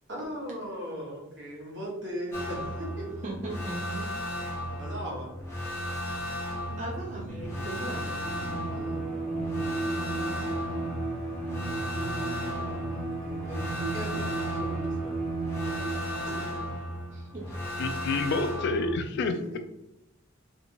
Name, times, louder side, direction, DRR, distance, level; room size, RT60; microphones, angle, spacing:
voice 1, 0.1-3.2 4.8-5.3 8.1-8.2 8.7-9.0 12.4-15.2 16.2-16.3 19.3-19.6, equal, 60° right, -3 dB, 1.2 m, -39 dB
sound 1, 2.3-19.0, equal, 15° left, 0.9 m, -35 dB
voice 2, 3.2-4.1 4.4-4.6 6.8-8.4 10.1-10.5 17.1-17.6, right 2 dB, 35° right, -3 dB, 0.5 m, -39 dB
sound 2, 5.9-15.8, right 2 dB, 85° right, 0.5 m, -43 dB
Bowed string instrument, 8.2-16.7, right 3 dB, 30° left, 1.3 m, -34 dB
voice 3, 17.8-19.6, left 3 dB, 55° left, 8 dB, 0.3 m, -29 dB
3.4 x 2.8 x 2.8 m, 0.89 s
head